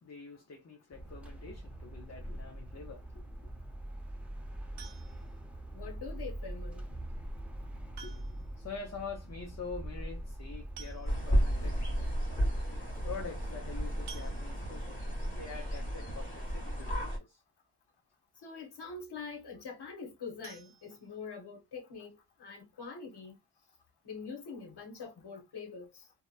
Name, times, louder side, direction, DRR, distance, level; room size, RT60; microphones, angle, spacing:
voice 1, 0.0-3.2 8.0-8.2 8.6-11.8 13.0-17.4, left 5 dB, 40° left, 0.6 m, -45 dB
sound 1, 0.9-14.5, right 1 dB, 5° right, 0.7 m, -43 dB
sound 2, 4.8-5.4 6.9-7.0 8.0-8.6 8.9-9.0 9.3-9.4 10.4-10.5 10.8-11.5 12.0-12.1 12.5-12.6 14.1-14.9 20.4-21.6 22.0-22.1 22.5-22.6 23.0-23.1, right 7 dB, 85° right, 0.6 m, -52 dB
voice 2, 5.7-6.8 18.4-23.4 24.0-26.1, left 5 dB, 80° left, 1.0 m, -44 dB
sound 3, 11.1-17.2, equal, 20° left, 1.4 m, -33 dB
2.8 x 2.1 x 2.3 m
cardioid pair, 70°, 39 cm